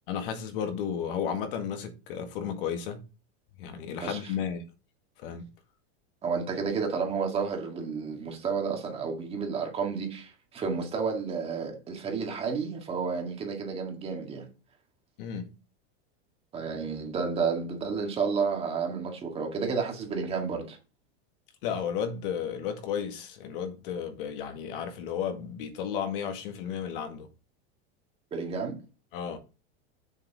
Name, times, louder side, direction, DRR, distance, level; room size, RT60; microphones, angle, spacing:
voice 1, 0.1-3.0 3.6-4.6 5.2-5.4 15.2-15.5 21.6-27.3 29.1-29.4, left 8 dB, 55° left, 2.0 m, -33 dB
voice 2, 4.0-4.3 6.2-14.5 16.5-20.8 28.3-28.8, right 5 dB, 20° right, 1.9 m, -31 dB
8.1 x 7.1 x 3.6 m
supercardioid pair, 170°, 31 cm